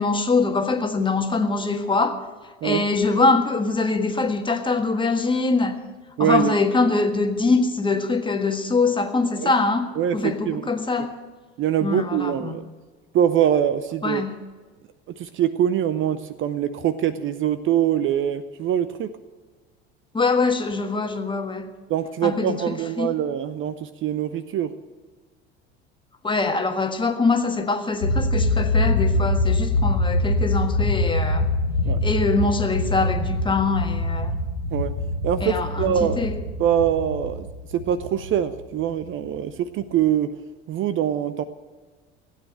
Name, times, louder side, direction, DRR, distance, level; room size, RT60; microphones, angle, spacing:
voice 1, 0.0-2.2 2.6-5.8 6.2-11.1 11.8-12.6 14.0-14.3 20.1-21.7 22.2-23.2 26.2-31.5 32.0-34.4 35.4-36.4, left 3 dB, 15° left, 6 dB, 1.6 m, -23 dB
voice 2, 6.2-6.5 9.4-9.5 10.0-10.6 11.6-12.6 13.1-14.2 15.2-19.1 21.9-24.7 31.8-32.0 34.7-35.0 35.2-36.2 36.6-40.3 40.7-41.4, right 10 dB, 40° right, 13 dB, 0.7 m, -23 dB
sound 1, 28.0-39.3, left 2 dB, 60° left, 1.2 m, -24 dB
16.0 x 9.2 x 7.8 m, 1.4 s
figure-of-eight pair, 65°, 32 cm